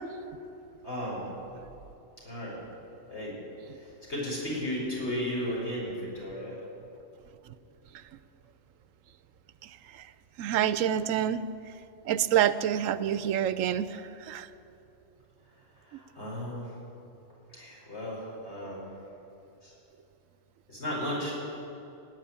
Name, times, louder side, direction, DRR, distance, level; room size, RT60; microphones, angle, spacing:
voice 1, 0.8-1.3 2.2-2.6 3.1-3.4 3.7-6.6 15.8-16.8 17.5-18.8 19.6-19.7 20.7-21.7, left 1 dB, 55° left, -5 dB, 5.3 m, -35 dB
voice 2, 9.6-10.1 10.4-11.4 12.0-14.5, right 10 dB, 85° right, 14 dB, 1.0 m, -27 dB
17.5 x 9.2 x 8.9 m, 2.9 s
omnidirectional pair, 1.3 m